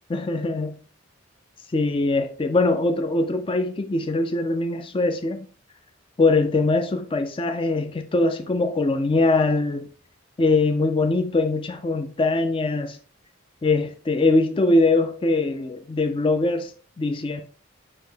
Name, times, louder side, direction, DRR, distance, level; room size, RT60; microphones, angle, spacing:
voice 1, 0.1-0.8 1.7-5.5 6.2-9.9 10.4-13.0 13.6-16.7 17.0-17.4, left 2 dB, 25° left, 0.3 m, -22 dB
5.6 x 2.8 x 3.3 m
head